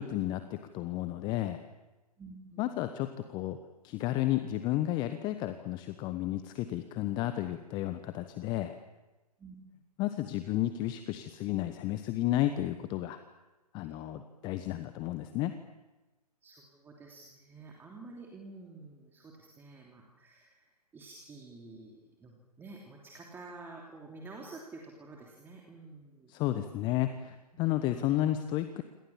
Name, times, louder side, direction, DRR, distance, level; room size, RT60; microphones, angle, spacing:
voice 1, 0.0-1.6 2.6-3.6 3.8-8.8 10.0-13.2 13.7-15.6 26.3-28.8, left 14 dB, 20° left, 10 dB, 1.1 m, -32 dB
voice 2, 2.2-2.8 9.4-9.6 16.4-20.7 20.9-26.3 27.5-27.7, right 3 dB, 10° right, -1 dB, 3.1 m, -49 dB
27.5 x 26.5 x 7.3 m, 1.1 s
figure-of-eight pair, 125°, 21 cm